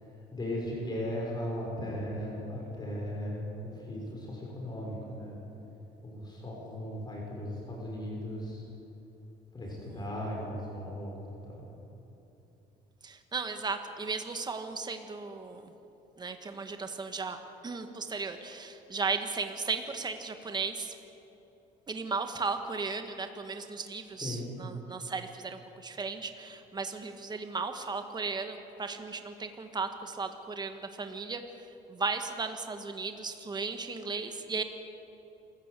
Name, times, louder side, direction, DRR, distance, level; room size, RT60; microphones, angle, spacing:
voice 1, 0.3-5.4 6.0-8.6 9.5-11.2 11.4-11.7 24.2-24.5, left 1 dB, 25° left, -2 dB, 6.0 m, -37 dB
voice 2, 9.7-10.1 13.0-15.7 16.2-17.4 17.6-20.9 21.9-31.4 31.9-34.6, right 4 dB, 25° right, 7 dB, 1.7 m, -36 dB
27.0 x 14.5 x 8.3 m, 2.9 s
cardioid pair, 110°, 17 cm